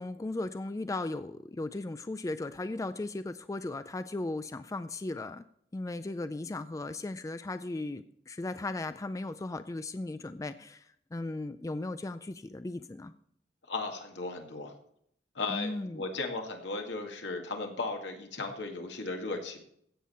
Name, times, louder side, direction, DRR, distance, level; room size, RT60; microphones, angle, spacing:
voice 1, 0.0-5.4 5.7-13.1 15.5-16.0, left 2 dB, 20° left, 12 dB, 0.4 m, -37 dB
voice 2, 13.7-14.7 15.4-19.6, left 3 dB, 80° left, 3 dB, 1.9 m, -36 dB
15.5 x 7.4 x 4.3 m, 0.69 s
head